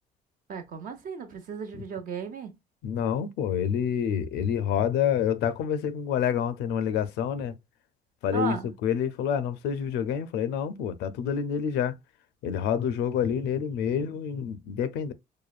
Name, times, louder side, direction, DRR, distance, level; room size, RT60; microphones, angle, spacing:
voice 1, 0.5-2.5 8.3-8.7, right 6 dB, 55° right, 0.9 m, -35 dB
voice 2, 2.8-7.6 8.2-11.9 12.4-15.1, left 8 dB, 85° left, 0.5 m, -28 dB
4.9 x 2.2 x 2.4 m
cardioid pair, 110°, 17 cm